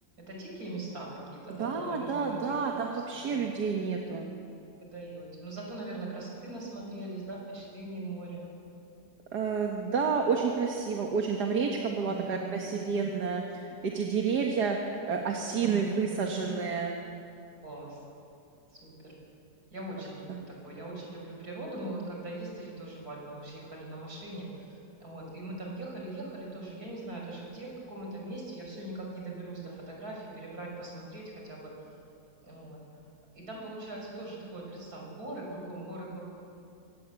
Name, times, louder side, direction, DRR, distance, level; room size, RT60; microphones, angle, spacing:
voice 1, 0.3-2.6 2.9-3.4 4.8-8.4 12.1-13.0 15.6-15.8 16.2-16.4 17.6-18.0 18.7-19.1 19.7-31.7 32.4-32.8 33.3-36.2, right 2 dB, 70° right, -2 dB, 6.6 m, -41 dB
voice 2, 1.5-4.3 9.3-14.8 15.1-17.0 20.3-20.4, right 5 dB, 90° right, 1 dB, 2.1 m, -30 dB
24.5 x 18.5 x 8.3 m, 2.6 s
omnidirectional pair, 1.7 m